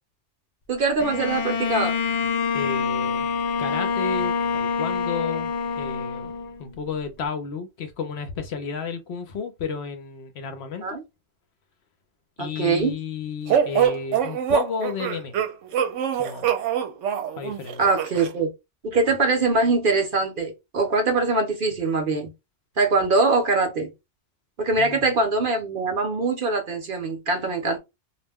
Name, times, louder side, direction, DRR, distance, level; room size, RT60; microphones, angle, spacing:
voice 1, 0.7-1.9 10.8-11.0 12.4-12.9 17.8-18.5 18.8-22.3 22.8-23.9 24.6-27.8, right 3 dB, 50° right, 0.8 m, -23 dB
Bowed string instrument, 1.0-6.8, left 5 dB, 90° left, 0.3 m, -26 dB
voice 2, 2.5-3.3 3.6-6.3 6.6-11.0 12.4-15.4 16.1-16.5 17.4-17.8 24.8-25.1, left 5 dB, 65° left, 0.8 m, -32 dB
sound 1, 13.5-18.3, right 8 dB, 80° right, 0.9 m, -24 dB
2.4 x 2.1 x 3.4 m
omnidirectional pair, 1.3 m